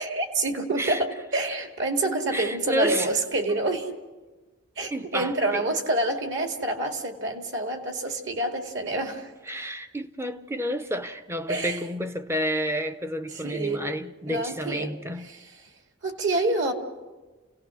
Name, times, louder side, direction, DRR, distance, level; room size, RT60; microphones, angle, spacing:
voice 1, 0.0-3.9 4.8-9.3 11.5-11.8 13.3-13.9 14.3-15.5 16.0-16.7, right 2 dB, 55° right, 2.3 m, -27 dB
voice 2, 2.3-3.1 4.9-5.6 9.5-15.3, equal, 10° right, 0.7 m, -30 dB
29.0 x 17.5 x 6.3 m
head